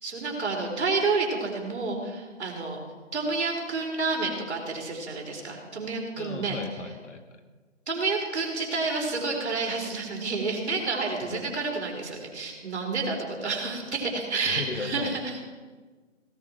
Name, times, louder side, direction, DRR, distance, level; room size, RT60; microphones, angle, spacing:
voice 1, 0.0-2.8 3.1-6.8 7.9-15.4, right 3 dB, 60° right, 0 dB, 4.3 m, -29 dB
voice 2, 6.2-7.4 11.2-11.4 14.4-15.2, left 4 dB, 65° left, 6 dB, 1.8 m, -36 dB
17.5 x 13.5 x 4.5 m, 1.4 s
hypercardioid pair, 165°, 38 cm